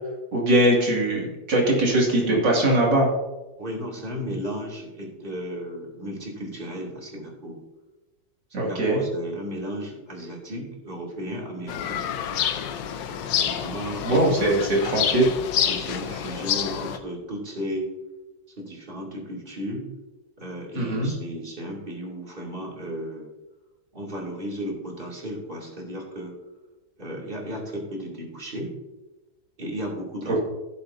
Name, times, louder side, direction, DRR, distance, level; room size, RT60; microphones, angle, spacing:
voice 1, 0.3-3.1 8.5-9.0 14.0-15.2 20.7-21.1 30.3-30.4, right 1 dB, 75° right, -3 dB, 3.1 m, -21 dB
voice 2, 3.6-7.6 8.5-12.0 13.3-14.8 15.7-17.9 18.6-19.9 20.4-23.3 23.9-26.3 27.0-28.7 29.6-30.4, equal, 30° right, -3 dB, 2.6 m, -34 dB
sound 1, 11.7-17.0, left 9 dB, 90° left, 1.4 m, -28 dB
15.5 x 7.2 x 2.7 m, 1.1 s
omnidirectional pair, 1.9 m